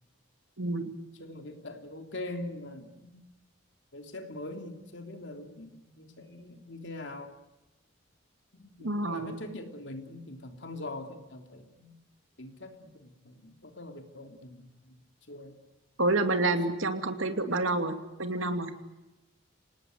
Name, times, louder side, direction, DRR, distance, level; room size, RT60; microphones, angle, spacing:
voice 1, 0.6-0.9 8.8-9.3 16.0-18.7, right 2 dB, 80° right, 7 dB, 2.6 m, -28 dB
voice 2, 1.2-3.2 3.9-7.3 8.5-12.0 12.4-15.0 15.3-15.6, left 2 dB, 65° left, 5 dB, 3.2 m, -43 dB
26.5 x 19.0 x 9.5 m, 1.0 s
head